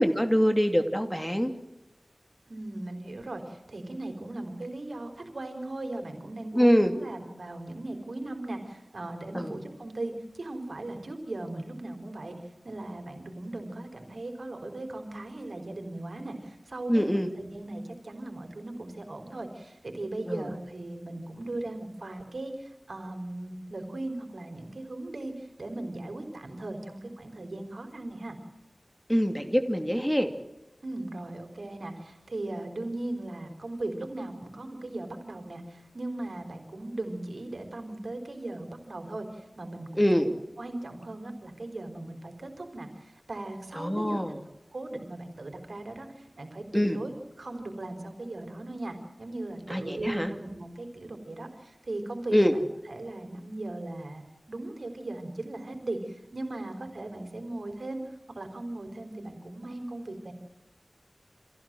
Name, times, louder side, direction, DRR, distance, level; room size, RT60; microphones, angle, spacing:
voice 1, 0.0-1.5 6.5-6.9 9.3-9.6 16.9-17.3 20.2-20.5 29.1-30.3 40.0-40.3 43.7-44.4 46.7-47.0 49.7-50.3 52.3-52.5, equal, 5° left, 6 dB, 2.5 m, -24 dB
voice 2, 2.5-12.3 12.6-17.1 17.4-28.4 30.8-40.3 40.6-44.2 44.7-47.1 47.4-52.3 52.9-54.2 54.5-60.3, right 2 dB, 80° right, 4 dB, 4.4 m, -38 dB
26.5 x 16.0 x 7.7 m, 0.99 s
wide cardioid pair, 40°, 0 cm